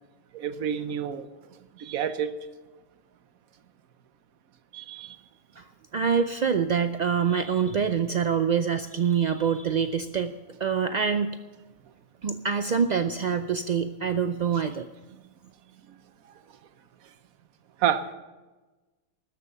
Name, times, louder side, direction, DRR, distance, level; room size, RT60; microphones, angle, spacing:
voice 1, 0.3-1.3 1.8-2.3 4.7-5.2 15.9-16.0 17.8-18.1, right 9 dB, 85° right, 1.3 m, -29 dB
voice 2, 5.9-11.4 12.2-14.9, right 6 dB, 65° right, 0.4 m, -25 dB
13.5 x 11.5 x 6.7 m
omnidirectional pair, 1.4 m